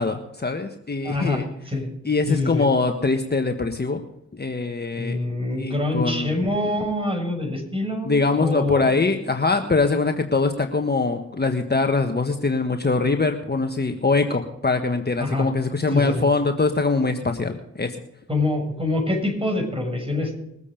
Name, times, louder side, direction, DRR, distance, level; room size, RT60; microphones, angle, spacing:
voice 1, 0.0-1.4 2.0-4.0 4.3-5.2 5.6-6.4 8.0-18.0, left 3 dB, 30° left, 5 dB, 1.5 m, -23 dB
voice 2, 1.0-1.9 2.3-2.6 5.0-8.9 15.2-15.5 15.9-16.2 18.3-20.4, left 2 dB, 15° right, 2 dB, 7.0 m, -25 dB
22.0 x 8.3 x 5.2 m, 0.80 s
supercardioid pair, 45°, 32 cm